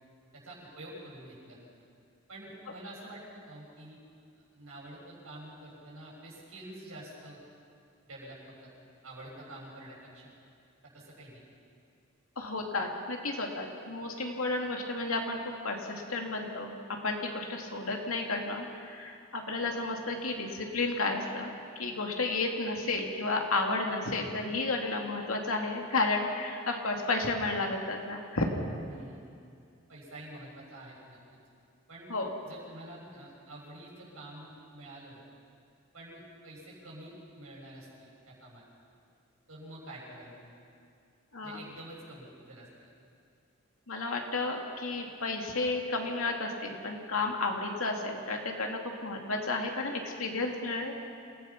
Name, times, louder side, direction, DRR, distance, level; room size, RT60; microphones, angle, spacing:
voice 1, 0.3-1.8 2.3-4.0 4.4-7.4 8.0-8.7 9.0-10.3 10.8-11.4 28.9-29.2 29.9-31.2 31.9-32.1 32.4-35.2 35.9-38.6 39.5-40.5 41.4-42.9, right 1 dB, 80° right, -4 dB, 6.8 m, -48 dB
voice 2, 12.4-28.5 32.1-32.3 41.3-41.6 43.9-51.0, left 3 dB, 80° left, 1 dB, 2.5 m, -32 dB
27.5 x 16.5 x 5.9 m, 2.4 s
head